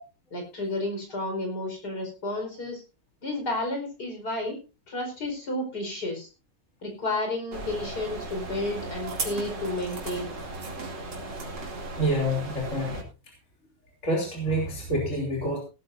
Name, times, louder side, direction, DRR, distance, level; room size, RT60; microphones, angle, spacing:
voice 1, 0.3-2.8 3.2-4.6 4.9-6.3 6.8-10.4, left 2 dB, 65° left, 3 dB, 5.3 m, -31 dB
sound 1, 7.5-13.0, right 2 dB, 85° right, 3.4 m, -36 dB
voice 2, 12.0-13.0 14.0-15.6, right 1 dB, 45° left, -1 dB, 3.5 m, -27 dB
17.5 x 13.0 x 2.6 m, 0.31 s
omnidirectional pair, 1.9 m